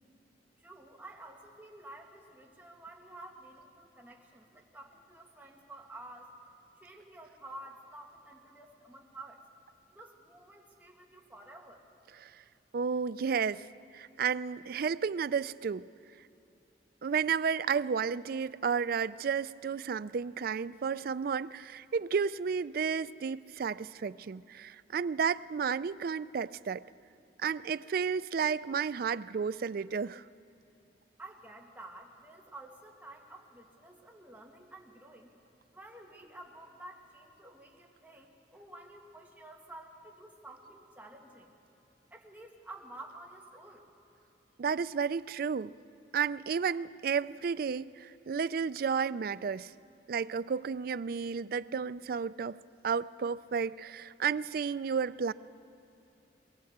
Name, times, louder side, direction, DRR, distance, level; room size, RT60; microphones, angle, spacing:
voice 1, 0.6-6.3 6.8-9.4 9.9-11.8 31.2-35.3 35.7-41.5 42.1-43.9, right 2 dB, 10° right, -1 dB, 1.8 m, -50 dB
voice 2, 12.7-13.7 13.9-15.9 17.0-26.8 27.4-30.2 44.6-45.7 46.1-49.7 50.1-52.6 52.8-55.3, right 6 dB, 55° right, 17 dB, 0.4 m, -32 dB
21.5 x 16.0 x 8.0 m, 2.8 s
head